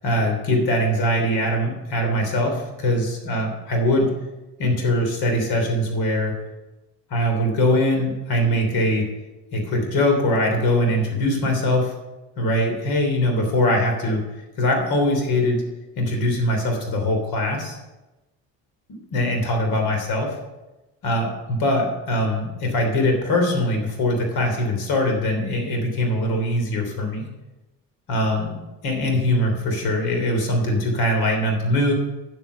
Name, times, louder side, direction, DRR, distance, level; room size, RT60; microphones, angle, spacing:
voice 1, 0.0-4.1 4.6-6.3 7.1-9.1 9.5-11.9 12.4-14.2 14.6-15.6 16.0-17.8 18.9-20.4 21.0-27.3 28.1-28.5 28.8-31.9, left 1 dB, 65° left, 3 dB, 3.5 m, -22 dB
9.8 x 8.0 x 5.7 m, 1.1 s
supercardioid pair, 75°, 40 cm